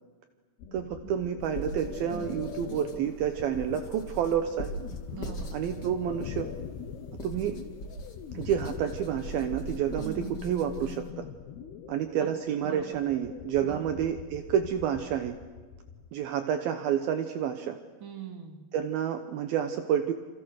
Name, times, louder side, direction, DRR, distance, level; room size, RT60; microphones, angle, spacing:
sound 1, 0.6-16.1, left 8 dB, 65° left, 2.9 m, -43 dB
voice 1, 0.7-4.7 5.5-6.5 7.2-7.6 8.3-11.3 11.9-15.4 16.1-17.8 18.7-20.1, right 9 dB, 80° right, 8 dB, 2.1 m, -29 dB
sound 2, 1.4-11.1, equal, 50° left, 1.2 m, -41 dB
voice 2, 2.1-2.4 5.1-5.5 10.0-10.3 12.2-12.3 12.6-13.1 13.6-14.0 18.0-18.7, right 7 dB, 35° right, 5 dB, 2.3 m, -42 dB
28.5 x 28.0 x 6.5 m, 1.4 s
omnidirectional pair, 5.8 m